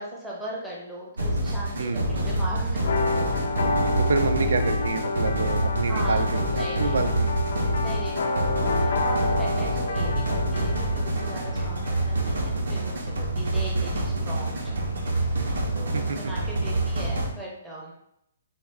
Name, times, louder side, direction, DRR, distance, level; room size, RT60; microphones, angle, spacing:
voice 1, 0.0-2.9 5.9-7.0 7.7-17.9, right 1 dB, ahead, -6 dB, 0.5 m, -39 dB
sound 1, 1.2-17.3, right 1 dB, 85° right, 0.8 m, -27 dB
sound 2, 2.8-12.4, left 3 dB, 60° left, 0.5 m, -30 dB
voice 2, 4.0-6.3 6.5-7.4 15.9-16.2, right 4 dB, 70° right, 8 dB, 0.3 m, -27 dB
4.2 x 2.3 x 3.5 m, 0.77 s
hypercardioid pair, 180°, 0 cm